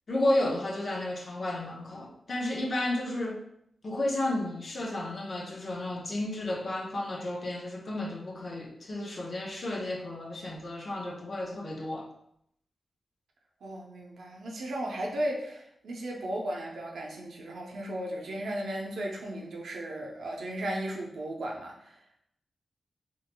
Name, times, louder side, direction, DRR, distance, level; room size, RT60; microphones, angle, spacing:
voice 1, 0.1-3.4 3.8-12.1, left 1 dB, 55° left, -1 dB, 0.7 m, -32 dB
voice 2, 13.6-22.0, right 1 dB, 85° right, -1 dB, 0.7 m, -35 dB
3.8 x 3.0 x 2.2 m, 0.74 s
cardioid pair, 80°, 0 cm